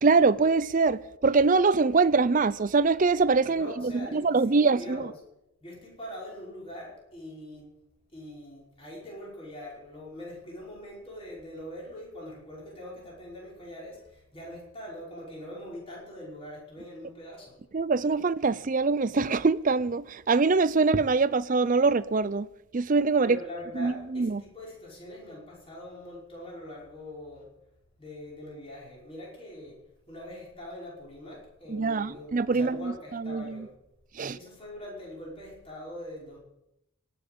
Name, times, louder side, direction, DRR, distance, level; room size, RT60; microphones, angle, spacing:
voice 1, 0.0-5.1 17.7-22.5 22.7-23.4 23.8-24.4 31.7-33.7 34.2-34.4, right 4 dB, 35° right, 0.5 m, -24 dB
voice 2, 3.5-5.1 5.6-7.7 8.1-14.0 14.3-17.5 23.2-27.5 28.0-29.8 30.1-33.7 34.3-36.4, left 1 dB, 25° left, 5.3 m, -42 dB
18.0 x 7.1 x 8.7 m
head